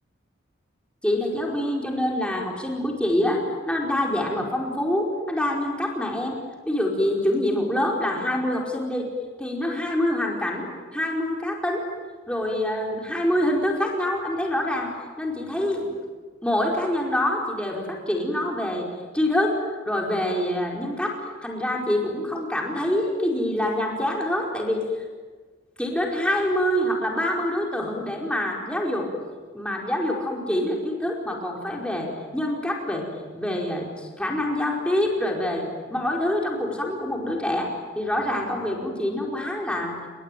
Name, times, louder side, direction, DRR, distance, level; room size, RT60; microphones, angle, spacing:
voice 1, 1.0-6.3 6.7-9.1 9.4-11.9 12.3-14.9 15.2-16.0 16.4-18.9 19.1-19.6 19.9-21.1 21.4-24.9 25.8-29.1 29.5-33.1 33.3-37.7 37.9-40.0, left 1 dB, 5° left, -1 dB, 4.8 m, -25 dB
28.5 x 22.0 x 9.2 m, 1.5 s
head